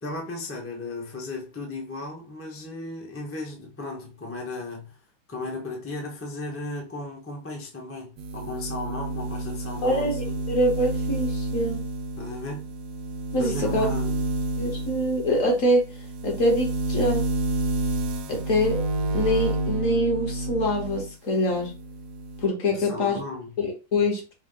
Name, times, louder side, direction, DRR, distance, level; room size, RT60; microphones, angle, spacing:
voice 1, 0.0-5.0 5.3-10.4 12.2-12.7 13.4-14.2 22.7-23.5, left 2 dB, 10° left, 0.7 m, -35 dB
sound 1, 8.2-21.1 21.5-22.5, right 2 dB, 80° right, 1.2 m, -30 dB
voice 2, 9.8-11.8 13.3-13.9 14.6-15.9 16.2-17.2 18.3-18.8 19.1-21.7 22.4-23.2 23.6-24.2, left 1 dB, 55° left, 1.7 m, -24 dB
5.1 x 2.3 x 3.8 m
omnidirectional pair, 1.7 m